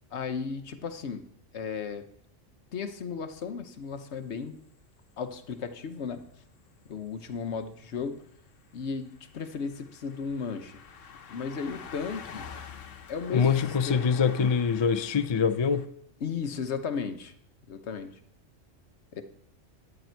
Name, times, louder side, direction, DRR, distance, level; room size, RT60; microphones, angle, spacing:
voice 1, 0.1-1.3 1.5-2.0 2.7-4.6 5.2-6.2 6.9-8.2 8.7-10.8 11.3-12.7 13.1-14.1 16.2-17.3 17.7-18.1 19.1-19.2, left 6 dB, 65° left, 1.2 m, -35 dB
sound 1, 3.8-3.9 5.4-5.5 6.2-6.3 6.6-6.8 7.1-15.9, left 6 dB, 90° left, 1.3 m, -47 dB
voice 2, 13.3-15.8, left 6 dB, 45° left, 0.3 m, -24 dB
12.0 x 9.1 x 4.5 m
omnidirectional pair, 1.3 m